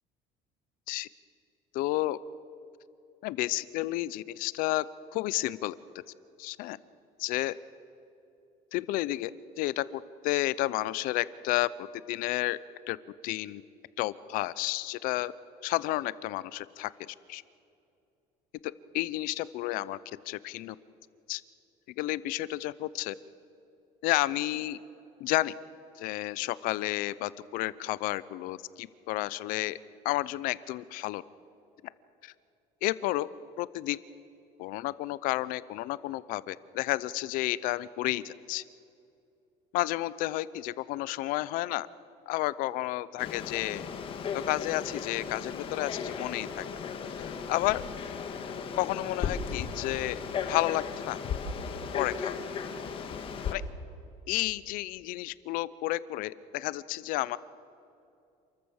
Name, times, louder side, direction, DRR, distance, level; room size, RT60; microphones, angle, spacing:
voice 1, 1.7-2.2 3.2-4.8 5.1-5.7 6.4-6.8 7.2-7.5 8.7-9.3 9.6-12.6 12.9-13.0 13.2-13.6 14.0-15.3 15.6-17.4 18.9-20.0 20.3-20.8 21.3-21.4 22.0-23.2 24.0-24.8 25.2-25.5 26.0-29.8 30.0-31.2 32.2-32.3 32.8-33.3 33.6-34.0 34.6-38.6 39.7-41.9 42.3-43.9 44.3-46.7 47.2-47.8 48.7-50.2 50.5-51.2 51.9-52.3 53.5-53.6 54.3-57.4, left 17 dB, 75° left, 18 dB, 0.7 m, -31 dB
Frog, 43.2-53.5, left 6 dB, 40° left, 1.6 m, -36 dB
28.5 x 14.0 x 7.2 m, 2.6 s
cardioid pair, 160°, 15 cm